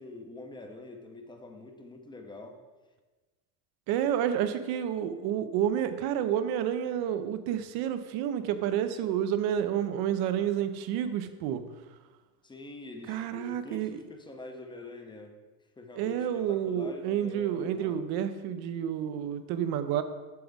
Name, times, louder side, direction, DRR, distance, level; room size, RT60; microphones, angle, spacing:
voice 1, 0.0-2.6 12.4-15.4 15.8-18.0, left 2 dB, 10° left, 4 dB, 0.7 m, -45 dB
voice 2, 3.9-11.6 13.1-14.0 16.0-20.0, right 9 dB, 50° right, 10 dB, 0.8 m, -29 dB
7.8 x 6.8 x 3.5 m, 1.2 s
supercardioid pair, 110°, 49 cm